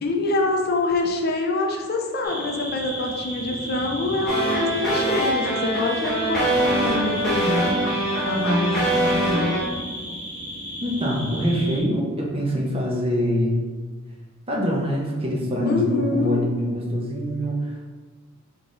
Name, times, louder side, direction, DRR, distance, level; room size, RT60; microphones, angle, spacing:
voice 1, 0.0-7.8 8.2-9.6 15.6-16.4, left 2 dB, 45° left, 2 dB, 0.5 m, -25 dB
sound 1, 2.2-11.8, equal, 40° right, 1.4 m, -34 dB
sound 2, 4.3-9.6, right 1 dB, 5° left, 1.3 m, -23 dB
voice 2, 10.8-13.6 14.5-17.8, equal, 25° right, -2 dB, 0.8 m, -24 dB
4.0 x 3.5 x 3.7 m, 1.4 s
head